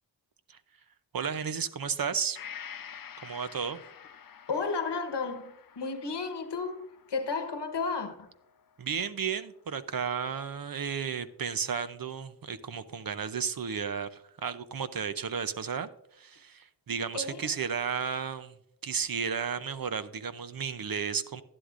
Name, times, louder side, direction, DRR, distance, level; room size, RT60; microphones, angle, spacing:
voice 1, 1.1-2.4 3.2-3.8 8.8-18.5 18.8-21.4, right 6 dB, 55° right, 0.7 m, -33 dB
Gong, 2.3-10.0 10.4-10.5, left 8 dB, 50° left, 0.6 m, -49 dB
voice 2, 4.5-8.3 17.1-17.5, left 4 dB, 70° left, 1.2 m, -33 dB
11.5 x 11.5 x 2.5 m
cardioid pair, 50°, 43 cm